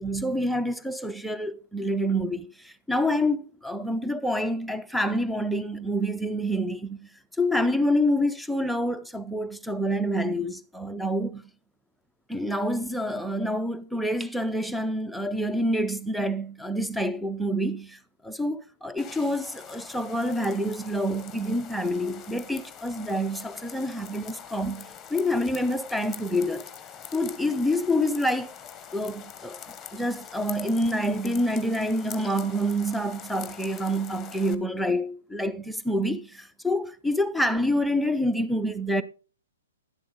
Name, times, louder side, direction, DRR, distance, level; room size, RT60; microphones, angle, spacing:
voice 1, 0.0-7.1 7.4-11.4 12.3-26.7 27.1-28.5 28.9-29.6 29.9-39.0, equal, ahead, 0.6 m, -27 dB
sound 1, 19.0-34.6, left 8 dB, 15° left, 1.1 m, -44 dB
11.0 x 7.5 x 3.7 m
hypercardioid pair, 125°, 0 cm